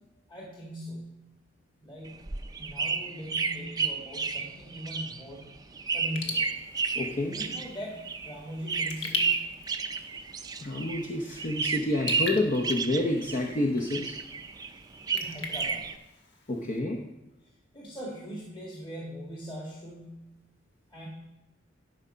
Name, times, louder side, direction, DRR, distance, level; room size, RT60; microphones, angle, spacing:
voice 1, 0.3-1.2 1.8-2.2 2.6-5.5 5.9-6.5 7.3-9.4 15.1-15.9 17.7-20.4 20.9-21.1, equal, 25° left, -4 dB, 2.0 m, -40 dB
sound 1, 2.0-11.1 11.4-13.6 13.9-15.9, right 5 dB, 20° right, 0.5 m, -32 dB
Raindrop / Drip, 6.0-16.8, left 4 dB, 75° left, 1.3 m, -42 dB
voice 2, 7.0-7.3 10.6-14.2 16.5-17.0, left 1 dB, 45° left, 1 dB, 0.9 m, -28 dB
12.0 x 5.2 x 5.6 m, 0.96 s
head